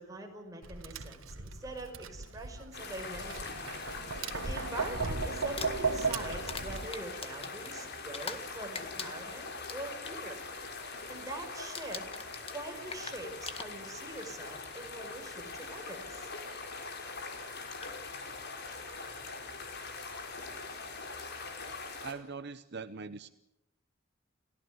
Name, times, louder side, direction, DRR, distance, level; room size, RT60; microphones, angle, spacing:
voice 1, 0.0-3.6 4.3-10.4 11.1-12.1 12.5-16.3, right 2 dB, 20° right, 2 dB, 5.3 m, -43 dB
Tap, 0.6-6.9, right 4 dB, 90° right, 1.8 m, -36 dB
sound 1, 2.7-22.1, left 4 dB, 55° left, 4.5 m, -42 dB
Crumpling crinkling, 5.4-8.5 8.7-10.2 10.5-10.8 11.1-11.4 11.7-14.1 15.1-15.2 17.2-17.3 17.7-18.0, left 5 dB, 30° left, 1.7 m, -43 dB
voice 2, 22.0-23.3, right 4 dB, 55° right, 12 dB, 0.9 m, -41 dB
30.0 x 17.0 x 9.6 m, 0.88 s
head